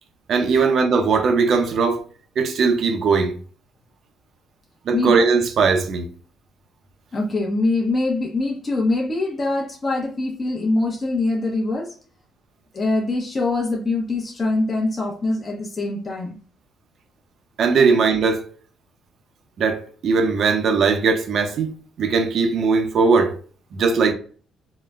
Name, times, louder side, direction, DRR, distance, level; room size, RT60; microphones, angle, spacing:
voice 1, 0.3-2.0 2.4-3.3 4.9-6.1 17.6-18.4 19.6-23.4 23.7-24.1, right 4 dB, 65° right, 0.5 m, -19 dB
voice 2, 7.1-11.9 12.7-16.4, left 2 dB, 35° left, 0.7 m, -23 dB
3.8 x 2.1 x 2.3 m
cardioid pair, 90°, 0 cm